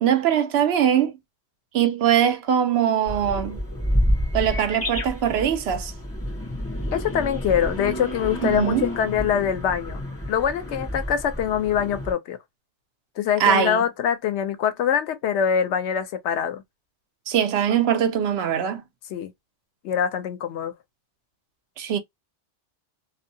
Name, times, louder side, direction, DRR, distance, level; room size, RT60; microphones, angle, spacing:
voice 1, 0.0-1.2 1.7-3.6 4.3-5.9 8.4-8.9 13.4-13.8 17.3-18.8 21.8-22.0, right 9 dB, 75° right, 0.8 m, -21 dB
sound 1, 3.1-12.1, equal, 15° left, 0.9 m, -29 dB
voice 2, 6.9-10.0 10.3-12.4 13.2-16.6 19.1-19.3 19.8-20.7, left 8 dB, 90° left, 0.9 m, -24 dB
2.6 x 2.4 x 2.6 m
omnidirectional pair, 1.1 m